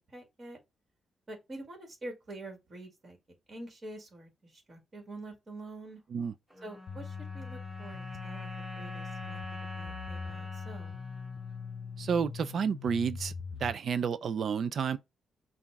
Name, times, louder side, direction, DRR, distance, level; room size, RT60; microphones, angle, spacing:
voice 1, 0.1-0.6 1.3-3.2 3.5-6.0 6.6-11.0, right 2 dB, 30° right, 1.8 m, -46 dB
sound 1, 6.5-12.9, left 1 dB, ahead, 3.3 m, -46 dB
sound 2, 6.9-13.7, left 6 dB, 65° left, 0.6 m, -42 dB
voice 2, 12.0-13.3 13.6-15.0, right 6 dB, 50° right, 0.3 m, -30 dB
5.8 x 2.4 x 3.4 m
cardioid pair, 145°, 0 cm